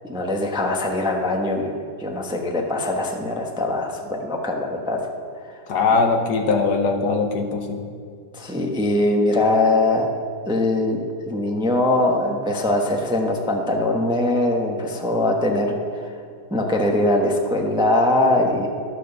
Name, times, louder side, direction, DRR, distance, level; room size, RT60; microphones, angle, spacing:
voice 1, 0.0-5.1 8.3-10.1 10.5-15.8 16.5-18.7, left 1 dB, 5° right, 1 dB, 0.7 m, -22 dB
voice 2, 5.7-7.8, left 4 dB, 70° left, 4 dB, 1.5 m, -21 dB
12.0 x 6.2 x 6.9 m, 2.3 s
omnidirectional pair, 1.9 m